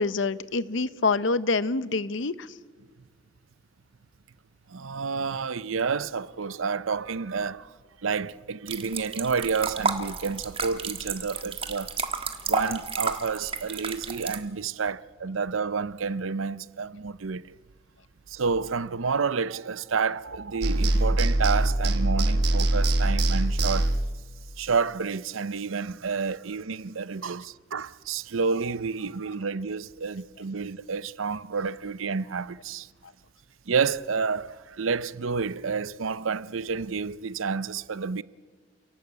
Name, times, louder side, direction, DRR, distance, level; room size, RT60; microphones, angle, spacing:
voice 1, 0.0-2.5, left 3 dB, 70° left, 0.8 m, -26 dB
voice 2, 4.7-7.7 8.0-11.9 12.5-17.6 18.3-23.9 24.6-32.9 33.7-38.2, right 5 dB, 85° right, 0.7 m, -29 dB
sound 1, 8.7-14.4, right 4 dB, 25° right, 1.5 m, -31 dB
sound 2, 20.6-24.2, right 1 dB, 55° right, 1.3 m, -23 dB
28.5 x 18.0 x 8.2 m
head